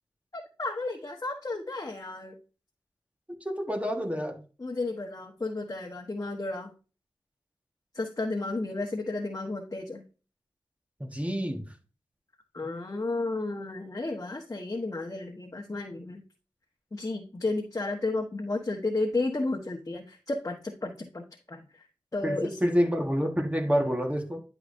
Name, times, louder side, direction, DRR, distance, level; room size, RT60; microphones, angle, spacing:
voice 1, 0.3-2.4 4.6-6.7 7.9-10.0 12.5-16.2 16.9-21.8 22.1-22.8, left 2 dB, 40° left, 1 dB, 1.2 m, -33 dB
voice 2, 3.4-4.4 11.0-11.7 22.2-24.4, equal, 15° right, 3 dB, 1.5 m, -28 dB
10.5 x 4.9 x 2.7 m, 0.34 s
cardioid pair, 40°, 9 cm